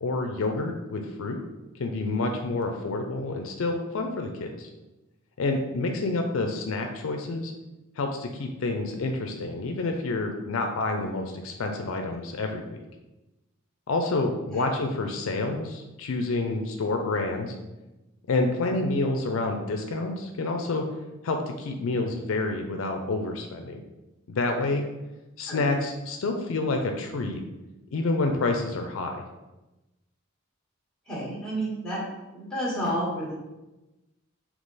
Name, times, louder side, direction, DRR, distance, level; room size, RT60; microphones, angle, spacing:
voice 1, 0.0-1.4 1.8-4.7 5.4-7.5 8.0-12.8 13.9-17.5 18.3-20.8 21.2-23.8 24.3-24.8 25.4-27.4 27.9-29.2, left 2 dB, 70° left, 4 dB, 0.4 m, -28 dB
voice 2, 31.1-32.0 32.3-33.3, equal, 5° left, -5 dB, 1.4 m, -30 dB
3.7 x 2.9 x 4.0 m, 1.0 s
head